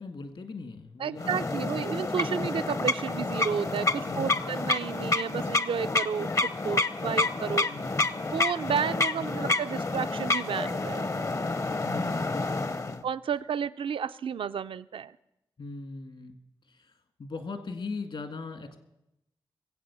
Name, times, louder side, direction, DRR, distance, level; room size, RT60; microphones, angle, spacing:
voice 1, 0.0-1.7 4.1-4.5 7.7-8.3 9.2-9.5 11.8-13.1 15.6-16.4 16.7-16.9 17.2-18.8, left 4 dB, 65° left, 8 dB, 1.9 m, -40 dB
voice 2, 1.0-7.7 8.3-11.3 13.0-15.2, right 7 dB, 70° right, 13 dB, 0.4 m, -32 dB
sound 1, 1.2-13.0, left 3 dB, 35° left, 0.7 m, -29 dB
21.5 x 8.1 x 6.9 m, 0.87 s
cardioid pair, 55°, 9 cm